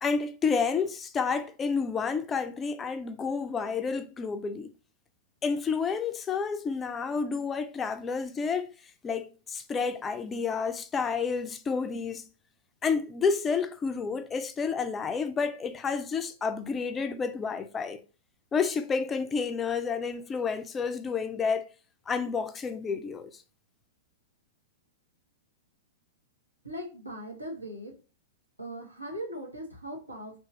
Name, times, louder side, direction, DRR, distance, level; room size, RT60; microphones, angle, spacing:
voice 1, 0.0-4.7 5.4-8.7 9.0-12.3 12.8-18.0 18.5-21.7 22.1-23.4, left 5 dB, 20° left, 0.4 m, -30 dB
voice 2, 26.6-27.9 28.6-30.4, equal, 90° right, 1.1 m, -39 dB
3.0 x 2.4 x 3.6 m
figure-of-eight pair, 100°, 0 cm